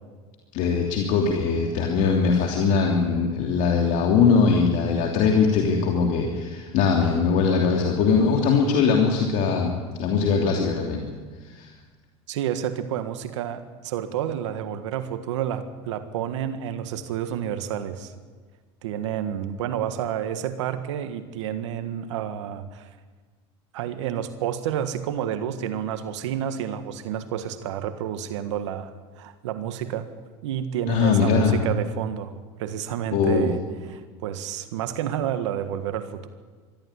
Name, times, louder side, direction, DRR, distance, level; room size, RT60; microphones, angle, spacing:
voice 1, 0.5-11.0 11.4-11.7 30.9-31.6 33.1-33.5, left 5 dB, 60° left, 1 dB, 2.9 m, -21 dB
voice 2, 12.3-18.1 18.8-22.9 23.7-30.1 30.4-32.3 32.6-33.6 33.9-36.3, right 10 dB, 85° right, 10 dB, 1.6 m, -30 dB
22.5 x 14.0 x 9.8 m, 1.4 s
supercardioid pair, 105°, 15 cm